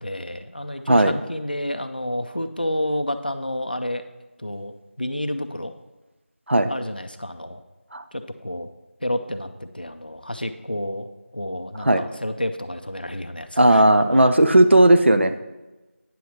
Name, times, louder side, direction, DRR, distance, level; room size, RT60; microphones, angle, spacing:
voice 1, 0.0-4.0 4.4-4.7 5.0-5.7 6.7-7.6 8.1-8.7 9.0-11.1 11.3-13.8 14.2-14.3, left 1 dB, 45° left, 8 dB, 0.5 m, -30 dB
voice 2, 13.6-15.3, right 1 dB, 60° right, 9 dB, 0.6 m, -15 dB
9.2 x 6.8 x 3.1 m, 1.1 s
figure-of-eight pair, 180°, 7 cm